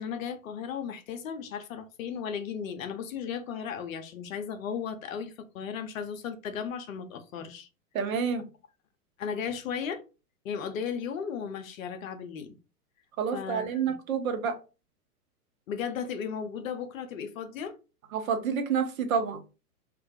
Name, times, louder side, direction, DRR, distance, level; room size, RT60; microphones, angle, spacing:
voice 1, 0.0-7.7 9.2-10.0 10.4-12.6 13.3-13.9 15.7-17.7, left 7 dB, 60° left, 0.5 m, -35 dB
voice 2, 7.9-8.4 13.2-14.6 18.1-19.4, right 6 dB, 60° right, 0.7 m, -28 dB
2.2 x 2.1 x 2.7 m
figure-of-eight pair, 105°, 47 cm